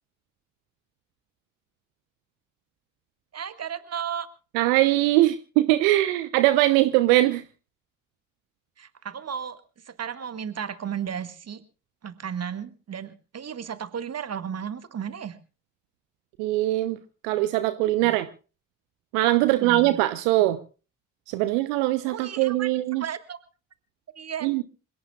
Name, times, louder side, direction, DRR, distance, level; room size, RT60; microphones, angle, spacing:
voice 1, 3.3-4.3 8.8-9.6 9.9-11.6 12.0-15.4 18.0-18.2 19.4-20.0 22.1-22.7 23.0-23.4 24.2-24.5, right 8 dB, 40° right, 12 dB, 1.7 m, -34 dB
voice 2, 4.5-7.4 16.4-17.0 17.2-18.3 19.1-20.6 21.3-23.0 24.4-24.6, right 16 dB, 70° right, 13 dB, 0.9 m, -21 dB
27.0 x 17.0 x 2.4 m, 0.36 s
figure-of-eight pair, 40°, 40 cm